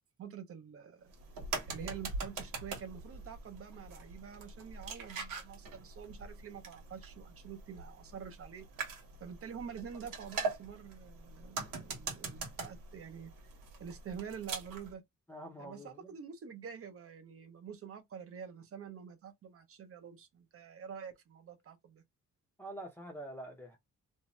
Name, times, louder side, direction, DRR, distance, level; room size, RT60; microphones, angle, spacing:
voice 1, 0.2-1.1 1.7-8.7 9.2-13.3 13.8-15.0 15.6-22.0, right 7 dB, 45° right, 0.6 m, -47 dB
sound 1, 1.1-14.9, right 4 dB, 85° right, 1.1 m, -43 dB
voice 2, 15.3-16.1 22.6-23.8, right 1 dB, 5° left, 0.5 m, -46 dB
2.7 x 2.2 x 3.0 m
wide cardioid pair, 175°, 32 cm